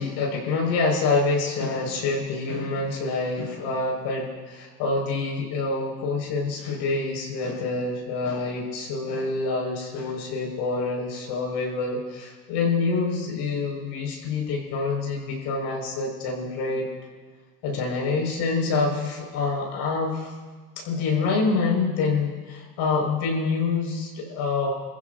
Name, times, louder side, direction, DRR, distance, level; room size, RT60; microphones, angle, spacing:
voice 1, 0.0-16.9 17.6-20.3 20.8-24.7, left 3 dB, 60° left, -1 dB, 5.6 m, -26 dB
23.5 x 15.5 x 2.7 m, 1.4 s
hypercardioid pair, 90°, 47 cm